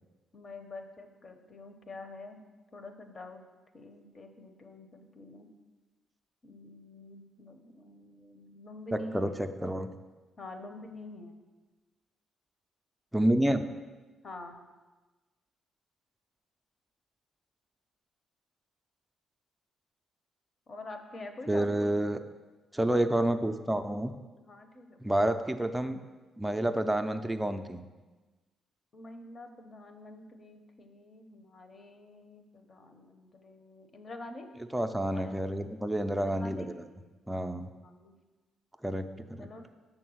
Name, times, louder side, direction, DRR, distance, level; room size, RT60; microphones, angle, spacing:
voice 1, 0.3-2.4 2.7-3.4 3.7-5.5 6.4-9.3 10.4-11.4 14.2-14.6 20.7-21.9 24.4-25.0 28.9-34.5 35.1-35.3 36.1-36.7 37.6-38.2 39.4-39.7, left 2 dB, 40° left, 6 dB, 0.8 m, -46 dB
voice 2, 9.1-9.9 13.1-13.6 21.5-22.2 22.7-24.1 25.0-26.0 26.4-27.9 34.7-36.7 37.3-37.7 38.8-39.5, right 1 dB, 5° right, 7 dB, 0.4 m, -29 dB
6.5 x 3.9 x 6.3 m, 1.2 s
cardioid pair, 90°, 0 cm